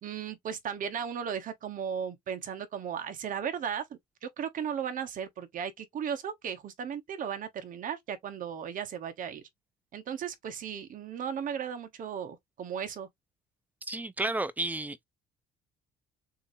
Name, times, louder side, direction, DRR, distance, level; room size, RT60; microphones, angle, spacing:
voice 1, 0.0-9.4 9.9-13.1, right 8 dB, 50° right, 1.3 m, -36 dB
voice 2, 13.9-15.0, right 2 dB, 10° right, 0.6 m, -32 dB
6.7 x 2.9 x 2.7 m
cardioid pair, 110°, 17 cm